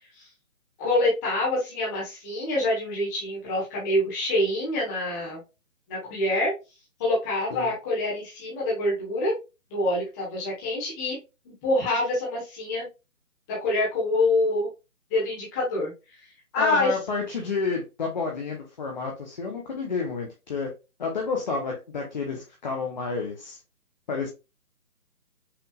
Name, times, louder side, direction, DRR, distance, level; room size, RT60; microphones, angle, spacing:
voice 1, 0.8-5.4 5.9-6.5 7.0-9.3 9.7-11.2 11.4-12.8 13.5-14.7 15.1-15.9 16.2-16.9, left 2 dB, 10° left, -6 dB, 1.4 m, -26 dB
voice 2, 16.6-20.7 21.0-23.6 24.1-24.3, left 4 dB, 30° left, 1 dB, 0.9 m, -30 dB
5.8 x 3.4 x 2.4 m, 0.27 s
hypercardioid pair, 165°, 43 cm